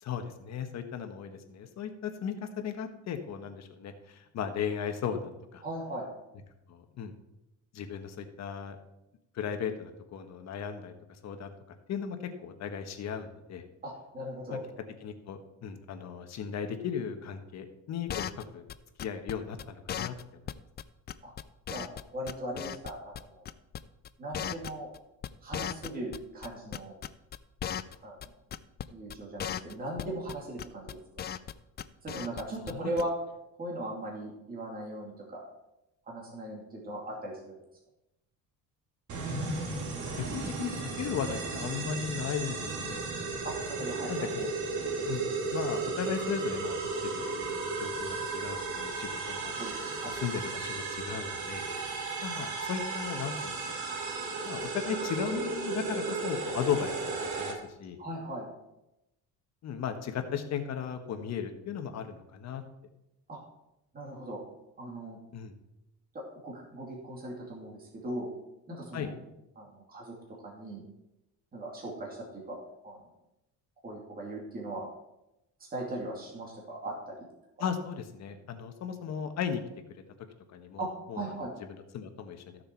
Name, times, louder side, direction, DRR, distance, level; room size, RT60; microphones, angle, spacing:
voice 1, 0.0-5.6 6.7-7.1 7.7-8.8 9.3-10.9 11.2-11.5 11.9-13.6 14.5-14.6 15.0-18.6 19.0-20.1 32.7-32.9 39.3-43.0 44.1-44.5 45.1-45.2 45.5-49.5 50.0-51.7 52.2-53.7 54.4-58.0 59.6-62.6 65.3-65.5 68.9-69.1 77.6-79.6 80.5-81.2 81.9-82.6, left 7 dB, 55° left, 6 dB, 1.3 m, -36 dB
voice 2, 5.6-6.0 13.8-14.6 21.2-21.3 21.7-21.9 22.1-23.4 24.2-24.9 25.4-26.9 28.0-28.2 28.9-31.0 32.0-33.1 33.6-35.4 36.1-37.6 43.4-44.3 49.6-50.1 58.0-58.5 63.3-63.4 63.9-64.4 64.8-65.2 66.1-68.3 68.7-69.1 69.6-70.2 70.4-70.8 71.5-72.6 72.8-73.0 73.8-74.9 75.7-77.2 80.8-80.9 81.1-81.5, right 1 dB, 25° right, -3 dB, 2.6 m, -38 dB
sound 1, 18.1-18.4 18.7-18.8 19.0-19.3 19.6-19.7 19.9-20.2 20.5-20.6 20.8-20.9 21.1-22.0 22.3-23.2 23.5-23.8 24.0-26.2 26.4-28.0 28.2-28.3 28.5-28.8 29.1-29.2 29.4-29.7 30.0-30.3 30.6-31.5 31.8-32.4 32.7-32.8 33.0-33.1, left 9 dB, 30° left, 0.4 m, -36 dB
sound 2, 39.1-57.5, right 4 dB, 60° right, 2.6 m, -34 dB
14.0 x 6.6 x 4.5 m, 0.90 s
cardioid pair, 140°, 33 cm